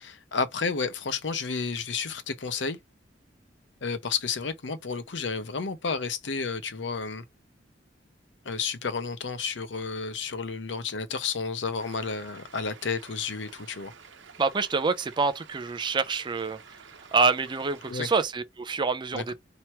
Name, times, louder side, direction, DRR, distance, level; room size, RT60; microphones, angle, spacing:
voice 1, 0.0-2.8 3.8-7.2 8.4-13.9 17.9-18.1 19.1-19.3, left 5 dB, 70° left, 0.7 m, -31 dB
sound 1, 11.8-18.3, right 6 dB, 85° right, 0.9 m, -51 dB
voice 2, 14.4-16.8 17.1-19.3, right 4 dB, 25° right, 0.4 m, -26 dB
3.0 x 2.9 x 4.4 m
head